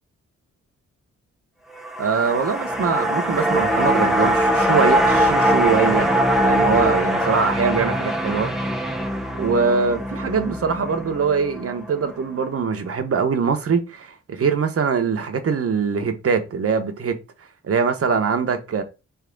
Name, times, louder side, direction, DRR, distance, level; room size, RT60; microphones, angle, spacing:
sound 1, 1.7-12.1 12.5-12.6, equal, ahead, 0.7 m, -22 dB
voice 1, 2.0-6.1 6.4-8.5 9.4-17.2 17.6-18.8, right 5 dB, 50° right, 0.9 m, -22 dB
4.0 x 3.5 x 3.8 m
cardioid pair, 85°, 29 cm